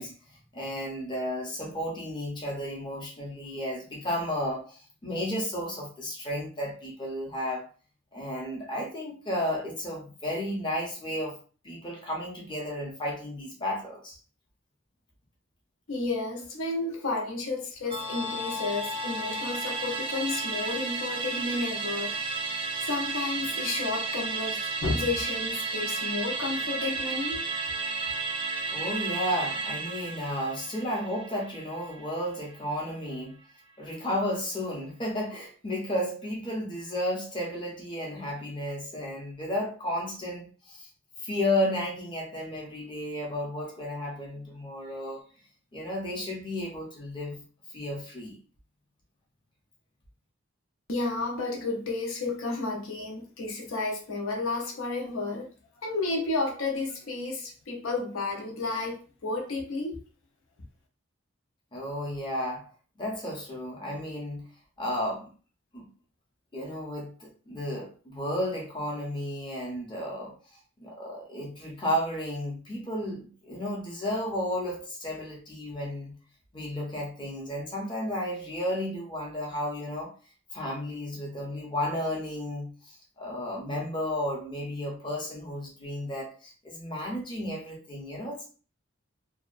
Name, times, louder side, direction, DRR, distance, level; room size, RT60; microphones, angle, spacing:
voice 1, 0.0-7.7 8.1-11.4 11.6-14.2 28.7-33.4 33.8-40.9 41.2-45.2 45.7-47.4 47.7-48.4 61.7-62.7 63.0-64.5 64.8-65.3 65.7-65.9 66.5-70.4 70.8-76.2 76.5-80.1 80.5-88.5, left 1 dB, 25° left, 0.7 m, -33 dB
voice 2, 15.9-22.3 22.8-27.4 50.9-55.5 55.8-60.0, left 3 dB, 80° left, 0.7 m, -32 dB
Musical instrument, 17.9-32.6 32.9-33.0, right 3 dB, 25° right, 0.3 m, -33 dB
2.8 x 2.1 x 2.4 m
head